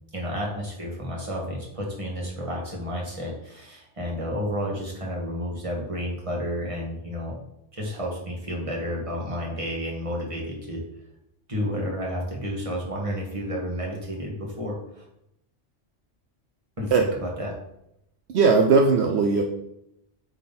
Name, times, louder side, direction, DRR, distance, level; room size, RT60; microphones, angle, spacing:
voice 1, 0.1-7.4 7.7-10.8 11.5-15.0 16.8-17.6, equal, 30° right, -2 dB, 1.8 m, -31 dB
voice 2, 18.3-19.4, right 4 dB, 75° right, 4 dB, 0.9 m, -18 dB
8.0 x 3.8 x 4.2 m, 0.81 s
omnidirectional pair, 1.2 m